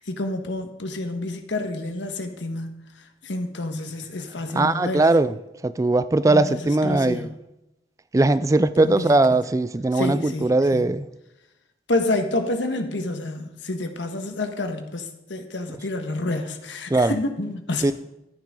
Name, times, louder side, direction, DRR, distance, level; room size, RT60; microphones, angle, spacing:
voice 1, 0.0-2.8 3.2-5.1 6.3-7.3 8.8-9.2 9.9-10.8 11.9-17.9, left 2 dB, 90° left, 1.4 m, -29 dB
voice 2, 4.5-5.4 5.6-7.3 8.1-11.1 16.9-17.1 17.8-17.9, right 2 dB, 20° right, 0.3 m, -20 dB
14.0 x 10.5 x 3.8 m
head